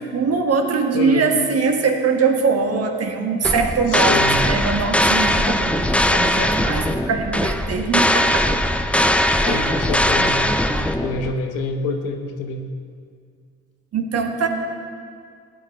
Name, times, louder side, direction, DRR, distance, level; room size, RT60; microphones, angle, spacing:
voice 1, 0.1-8.5 9.4-9.8 10.8-10.9 13.9-14.5, right 5 dB, 45° right, 4 dB, 1.6 m, -22 dB
voice 2, 0.9-1.3 3.9-4.4 9.4-10.5 11.0-12.6, left 3 dB, 80° left, 5 dB, 1.2 m, -26 dB
sound 1, 3.4-11.3, left 1 dB, 5° left, 0.6 m, -20 dB
15.5 x 9.6 x 4.3 m, 2.1 s
hypercardioid pair, 60°, 33 cm